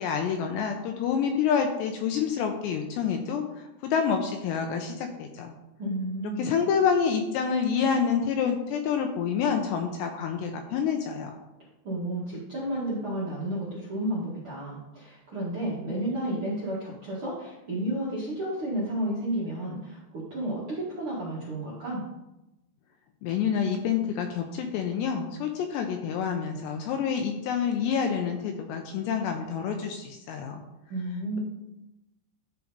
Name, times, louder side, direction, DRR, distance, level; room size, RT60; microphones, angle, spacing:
voice 1, 0.0-5.5 6.4-11.4 23.2-30.6, left 7 dB, 80° left, 4 dB, 2.6 m, -28 dB
voice 2, 5.8-6.5 11.8-22.0 30.9-31.4, right 1 dB, 55° right, -8 dB, 1.4 m, -32 dB
13.0 x 4.9 x 4.0 m, 0.95 s
omnidirectional pair, 5.5 m